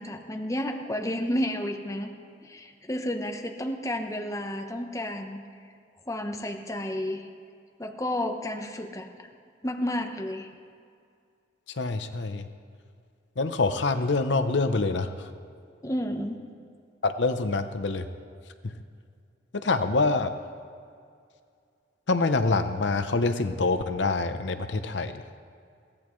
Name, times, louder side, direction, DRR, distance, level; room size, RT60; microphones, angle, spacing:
voice 1, 0.0-2.1 2.4-5.4 6.1-7.3 7.8-9.3 9.6-10.5 15.8-16.4, left 1 dB, 15° left, 4 dB, 0.9 m, -31 dB
voice 2, 11.7-12.5 13.4-15.3 17.0-18.1 18.6-18.7 19.5-20.3 22.1-25.2, left 3 dB, 75° left, 9 dB, 0.7 m, -26 dB
22.5 x 16.5 x 3.2 m, 2.3 s
head